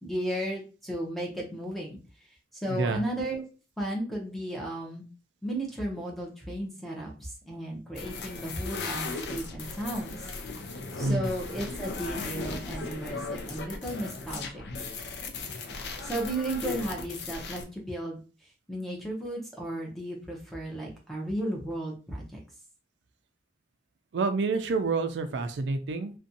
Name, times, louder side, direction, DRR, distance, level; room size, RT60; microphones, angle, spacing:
voice 1, 0.0-2.0 2.5-3.4 3.8-5.1 5.4-10.3 11.0-14.6 16.0-18.2 18.7-22.4, right 1 dB, ahead, -1 dB, 0.6 m, -34 dB
voice 2, 2.7-3.0 11.0-11.3 24.1-26.1, right 3 dB, 85° right, 8 dB, 0.4 m, -28 dB
sound 1, 7.9-17.6, left 3 dB, 75° left, 0.4 m, -37 dB
2.5 x 2.2 x 2.6 m, 0.35 s
head